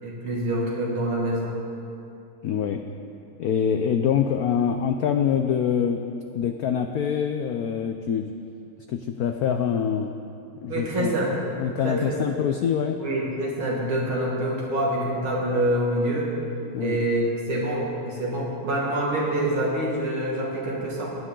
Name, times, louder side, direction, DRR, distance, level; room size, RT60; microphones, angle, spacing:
voice 1, 0.0-1.5 10.7-11.5 11.8-12.2 13.0-16.3 16.8-21.1, right 1 dB, 90° right, -4 dB, 3.0 m, -26 dB
voice 2, 2.4-2.8 3.4-6.0 6.3-8.3 8.9-10.1 10.6-11.1 11.6-13.0 16.7-17.0, left 8 dB, 85° left, 6 dB, 0.8 m, -25 dB
18.0 x 9.8 x 3.8 m, 2.7 s
omnidirectional pair, 2.2 m